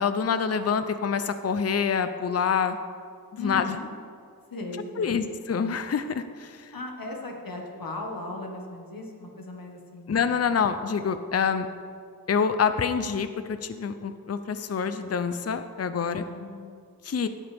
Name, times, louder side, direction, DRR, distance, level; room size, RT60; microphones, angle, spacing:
voice 1, 0.0-2.8 3.4-3.8 5.0-6.7 10.1-11.7 12.3-16.2 17.0-17.3, left 6 dB, 40° left, 10 dB, 0.6 m, -26 dB
voice 2, 3.4-3.9 4.5-5.2 6.7-10.2 15.9-16.9, left 2 dB, 65° left, 0 dB, 1.7 m, -37 dB
16.0 x 8.9 x 3.5 m, 2.2 s
wide cardioid pair, 70°, 37 cm